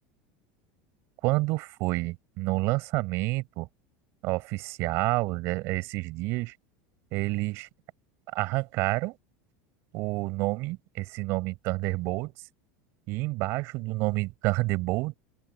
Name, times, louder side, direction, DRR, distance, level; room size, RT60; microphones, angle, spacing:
voice 1, 1.2-3.7 4.2-6.5 7.1-7.7 8.3-9.2 9.9-12.3 13.1-15.1, right 22 dB, 45° right, 5.1 m, -29 dB
open air
supercardioid pair, 170°, 6 cm